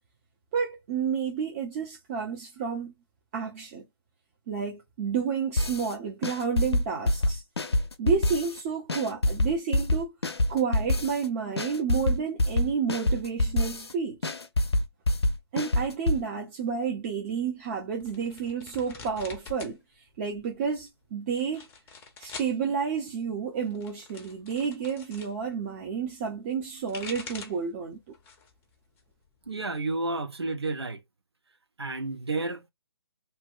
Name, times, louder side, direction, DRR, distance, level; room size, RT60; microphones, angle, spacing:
voice 1, 0.5-2.9 3.3-3.8 4.5-7.4 8.0-10.1 10.5-14.3 15.5-19.8 20.2-21.6 22.2-28.0, right 6 dB, 30° right, 0.7 m, -30 dB
sound 1, 5.6-5.9 6.2-8.6 8.9-11.3 11.6-13.9 14.2-16.2, left 1 dB, 85° left, 0.6 m, -26 dB
sound 2, 18.0-19.8 20.1-20.7 21.4-22.6 23.6-25.3 26.6-27.7 28.1-28.6 29.0-29.9, left 5 dB, 15° left, 0.6 m, -44 dB
voice 2, 29.5-31.0 31.8-32.7, right 3 dB, 85° right, 0.8 m, -31 dB
2.9 x 2.2 x 3.6 m
figure-of-eight pair, 140°, 13 cm